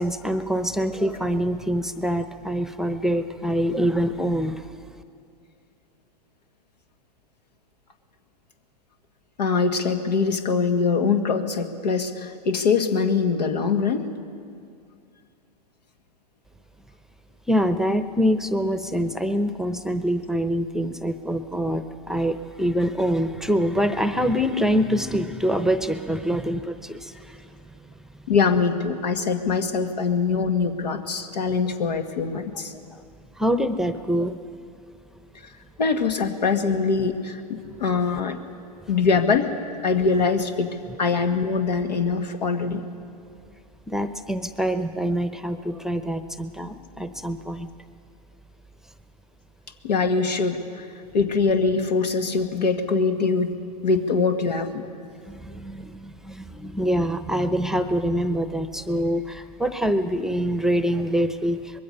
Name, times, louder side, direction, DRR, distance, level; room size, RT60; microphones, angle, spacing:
voice 1, 0.0-4.7 17.5-28.2 32.9-33.0 33.4-34.4 43.9-47.7 55.3-61.8, equal, ahead, 10 dB, 0.7 m, -25 dB
voice 2, 9.4-14.1 28.3-32.7 35.8-37.4 37.8-38.4 38.9-39.5 39.8-42.8 49.8-50.9 51.1-53.5 53.8-54.9, left 5 dB, 85° left, 7 dB, 1.8 m, -23 dB
25.0 x 21.0 x 5.5 m, 2.4 s
hypercardioid pair, 120°, 21 cm